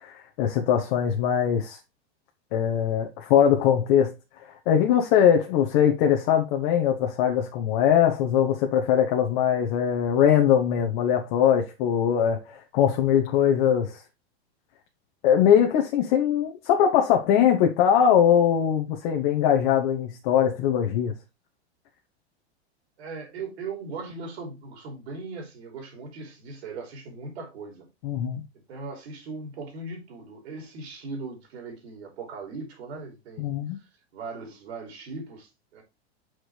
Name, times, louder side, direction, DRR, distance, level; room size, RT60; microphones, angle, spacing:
voice 1, 0.0-1.8 2.5-4.1 4.7-14.0 15.2-21.1 28.0-28.4 33.4-33.8, left 9 dB, 50° left, 1.1 m, -21 dB
voice 2, 23.0-27.9 28.7-33.6 34.1-35.8, right 4 dB, 75° right, 3.5 m, -39 dB
6.3 x 4.7 x 3.2 m
hypercardioid pair, 130°, 33 cm